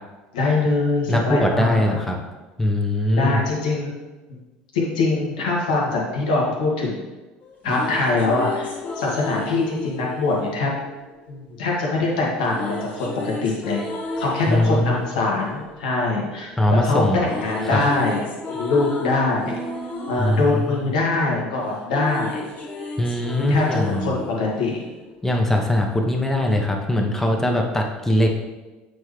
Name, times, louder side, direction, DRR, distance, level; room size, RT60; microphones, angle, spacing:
voice 1, 0.3-2.0 3.1-3.9 4.7-7.0 7.6-10.7 11.3-13.8 14.2-18.2 18.6-19.6 20.1-22.4 23.4-24.8 25.6-25.7, left 3 dB, 85° left, -3 dB, 1.8 m, -23 dB
voice 2, 1.1-2.2 2.6-3.4 14.5-15.0 16.6-17.2 17.7-17.8 20.2-20.9 23.0-24.2 25.2-28.3, left 1 dB, 10° left, 1 dB, 1.1 m, -21 dB
sound 1, 7.4-11.6 12.4-16.7 16.9-25.4, left 2 dB, 40° left, 1.4 m, -34 dB
8.0 x 4.5 x 3.3 m, 1.2 s
hypercardioid pair, 85°, 4 cm